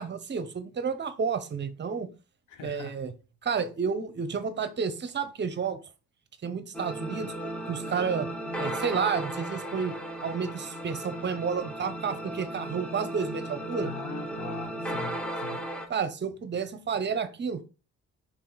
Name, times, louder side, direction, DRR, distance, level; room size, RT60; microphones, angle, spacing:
voice 1, 0.0-2.1 2.6-3.1 3.4-5.8 6.4-7.3 7.7-8.3 8.6-9.9 10.2-13.9 15.9-17.6, right 6 dB, 35° right, 0.7 m, -31 dB
voice 2, 2.5-3.0 13.8-15.7, left 6 dB, 75° left, 0.9 m, -41 dB
sound 1, 6.7-15.9, right 1 dB, 5° left, 0.8 m, -36 dB
4.6 x 2.8 x 3.8 m
cardioid pair, 90°, 30 cm